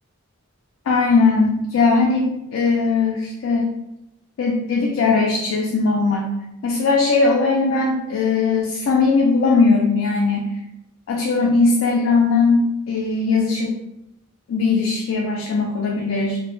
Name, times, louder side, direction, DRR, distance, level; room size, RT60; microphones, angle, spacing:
voice 1, 0.9-3.7 4.4-6.3 6.6-10.5 11.1-13.8 14.5-16.4, left 4 dB, 75° left, -1 dB, 0.3 m, -19 dB
2.1 x 2.0 x 3.0 m, 0.88 s
head